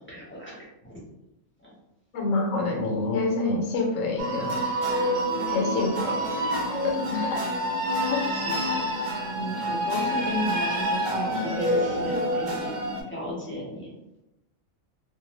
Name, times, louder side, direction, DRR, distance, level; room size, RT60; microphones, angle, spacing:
voice 1, 0.1-1.0 1.6-1.7 7.1-7.4 8.0-12.8 13.1-13.9, equal, 10° left, -8 dB, 0.6 m, -35 dB
voice 2, 2.1-4.6 5.5-6.4 6.8-7.0 7.3-7.4 8.1-8.2, left 3 dB, 75° left, 1 dB, 0.9 m, -27 dB
sound 1, 4.2-13.0, equal, 75° right, 0.4 m, -27 dB
2.5 x 2.1 x 3.0 m, 0.91 s
omnidirectional pair, 1.4 m